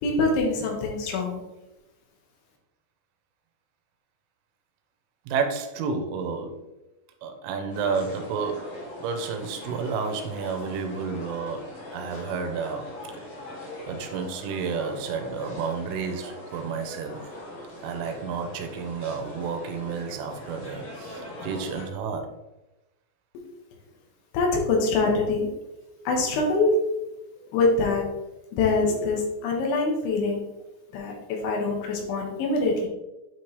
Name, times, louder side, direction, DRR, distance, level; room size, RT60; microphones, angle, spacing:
voice 1, 0.0-1.4 24.3-25.5 26.0-27.0 27.5-28.0 28.5-30.4 30.9-32.9, left 3 dB, 75° left, 0 dB, 3.4 m, -24 dB
voice 2, 5.3-6.7 7.2-12.9 13.9-17.2 17.8-22.3, right 5 dB, 80° right, 6 dB, 3.2 m, -31 dB
sound 1, 7.7-21.8, left 1 dB, 45° left, 2.0 m, -41 dB
8.9 x 4.4 x 3.2 m, 0.99 s
omnidirectional pair, 5.6 m